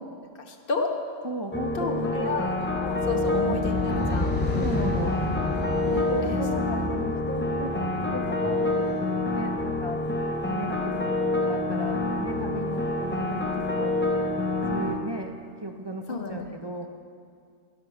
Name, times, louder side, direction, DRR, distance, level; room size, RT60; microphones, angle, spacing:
voice 1, 0.5-0.9 1.7-4.4 5.8-6.4 12.5-12.8 16.1-16.4, left 3 dB, 55° left, 2 dB, 1.4 m, -32 dB
voice 2, 1.2-2.4 3.1-3.4 4.5-5.3 5.9-10.2 10.5-14.1 14.7-16.9, right 1 dB, 30° right, 3 dB, 0.6 m, -35 dB
sound 1, 1.5-14.9, left 2 dB, 10° left, 0.8 m, -27 dB
sound 2, 2.5-8.9, left 2 dB, 40° left, 3.8 m, -32 dB
11.5 x 11.0 x 6.4 m, 2.2 s
omnidirectional pair, 1.1 m